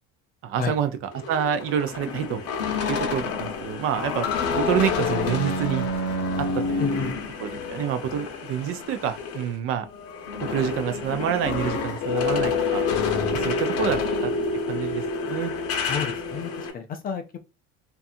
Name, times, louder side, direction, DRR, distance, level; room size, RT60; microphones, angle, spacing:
voice 1, 0.4-0.9 1.3-2.4 2.9-5.9 6.4-7.1 7.4-9.9 10.4-12.9 13.3-14.0 14.7-15.5, right 9 dB, 45° right, 0.4 m, -27 dB
sound 1, 1.1-9.5 9.9-16.7, left 4 dB, 50° left, 0.7 m, -28 dB
voice 2, 6.8-7.1 13.8-14.0 15.9-17.4, left 6 dB, 30° left, 0.4 m, -31 dB
2.7 x 2.3 x 2.4 m
cardioid pair, 150°, 31 cm